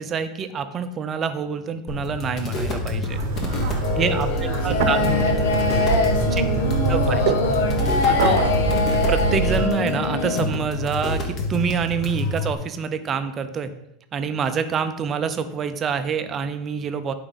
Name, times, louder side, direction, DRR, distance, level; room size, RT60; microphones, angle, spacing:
voice 1, 0.0-3.2 4.0-5.0 6.3-6.4 6.9-7.2 8.1-8.4 9.1-13.7 14.1-17.1, right 6 dB, 20° right, 9 dB, 0.5 m, -26 dB
sound 1, 1.9-12.5, left 3 dB, 25° left, 1.2 m, -28 dB
sound 2, 3.1-9.7, right 6 dB, 70° right, 0.8 m, -25 dB
voice 2, 3.4-7.6, left 1 dB, 40° left, -6 dB, 2.5 m, -36 dB
sound 3, 3.8-10.5, left 4 dB, 85° left, 1.1 m, -23 dB
11.5 x 4.9 x 4.0 m, 0.83 s
supercardioid pair, 165°, 0 cm